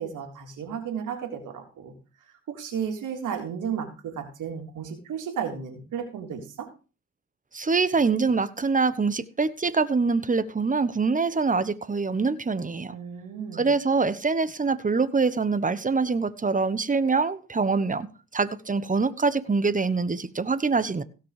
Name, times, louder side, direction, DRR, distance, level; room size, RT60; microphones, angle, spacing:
voice 1, 0.0-1.9 2.5-6.7 12.9-13.7, right 7 dB, 80° right, 3 dB, 3.2 m, -33 dB
voice 2, 7.5-12.9 13.6-18.1 18.3-21.0, right 4 dB, 25° right, 15 dB, 1.1 m, -24 dB
17.0 x 6.0 x 5.0 m, 0.34 s
cardioid pair, 65°, 31 cm